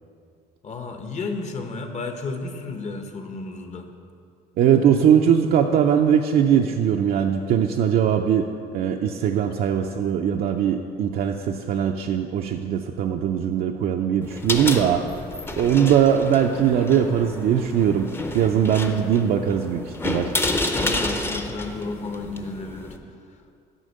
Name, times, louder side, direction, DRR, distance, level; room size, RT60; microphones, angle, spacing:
voice 1, 0.6-3.9 20.8-23.0, left 3 dB, 45° left, 5 dB, 1.0 m, -32 dB
voice 2, 4.6-8.5 8.7-15.0 15.6-20.3, right 8 dB, 60° right, 3 dB, 0.5 m, -20 dB
sound 1, 14.2-23.0, left 2 dB, 15° left, 0.6 m, -30 dB
10.0 x 4.3 x 6.5 m, 2.4 s
cardioid pair, 110°, 17 cm